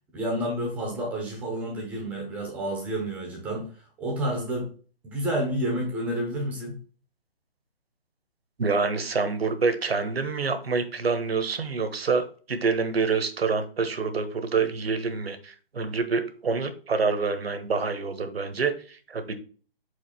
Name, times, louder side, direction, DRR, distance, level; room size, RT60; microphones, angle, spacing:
voice 1, 0.1-3.7 4.0-4.7 5.0-6.8, right 1 dB, 5° right, 0 dB, 0.7 m, -29 dB
voice 2, 8.6-19.4, right 4 dB, 80° right, 9 dB, 1.3 m, -27 dB
5.0 x 4.5 x 4.3 m, 0.40 s
hypercardioid pair, 155°, 30 cm